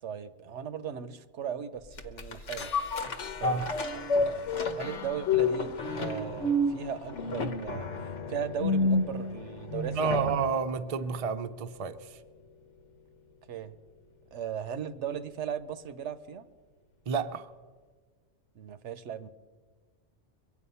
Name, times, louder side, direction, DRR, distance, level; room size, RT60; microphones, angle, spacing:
voice 1, 0.0-2.7 3.4-3.6 4.1-7.9 8.3-10.3 13.5-13.8 14.3-16.5 18.6-19.3, right 8 dB, 75° right, 1.0 m, -37 dB
sound 1, 2.0-10.5 11.0-11.1, left 2 dB, 85° left, 1.3 m, -30 dB
voice 2, 9.9-12.2 17.1-17.5, right 5 dB, 40° right, 0.6 m, -30 dB
23.0 x 8.7 x 5.5 m
omnidirectional pair, 1.2 m